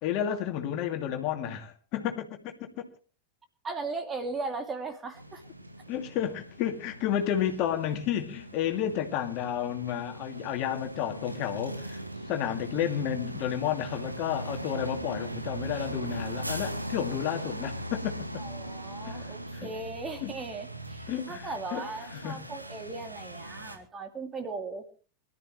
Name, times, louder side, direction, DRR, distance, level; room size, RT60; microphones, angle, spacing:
voice 1, 0.0-2.7 5.9-12.0 12.3-18.4 19.0-19.7 20.2-20.3 21.1-21.8 22.1-22.4, left 10 dB, 40° left, 2.6 m, -31 dB
voice 2, 3.6-5.4 18.4-24.8, right 3 dB, 20° right, 2.7 m, -37 dB
sound 1, 5.1-23.8, right 1 dB, 85° right, 1.8 m, -39 dB
23.5 x 13.5 x 3.2 m
figure-of-eight pair, 90°, 0 cm